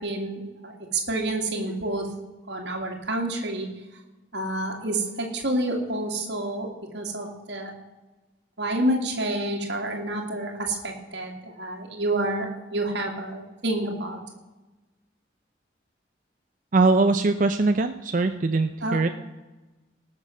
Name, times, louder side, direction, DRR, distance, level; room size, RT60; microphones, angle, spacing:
voice 1, 0.0-2.1 2.5-3.7 4.3-7.7 8.6-14.2 18.8-19.0, right 1 dB, 65° right, 1 dB, 2.3 m, -28 dB
voice 2, 16.7-19.1, right 3 dB, 45° right, 8 dB, 0.5 m, -21 dB
18.5 x 6.7 x 6.0 m, 1.1 s
head